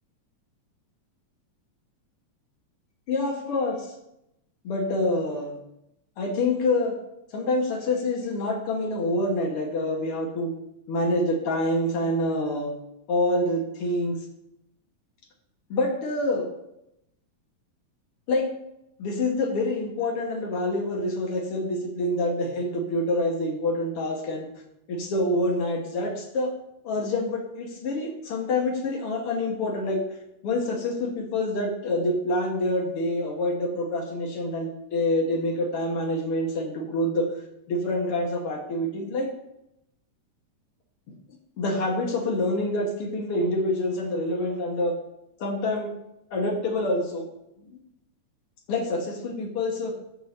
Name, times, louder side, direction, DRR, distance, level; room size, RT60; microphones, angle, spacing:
voice 1, 3.1-3.9 4.6-5.6 6.2-7.0 7.3-10.5 10.9-12.7 13.1-14.2 15.7-16.5 18.3-18.4 19.0-24.5 24.9-26.5 26.8-30.0 30.4-37.3 37.7-39.3 41.6-45.0 45.4-45.9 46.3-47.3 47.6-47.8 48.7-49.9, left 1 dB, 50° left, 1 dB, 2.1 m, -26 dB
13.0 x 6.4 x 2.8 m, 0.82 s
omnidirectional pair, 3.7 m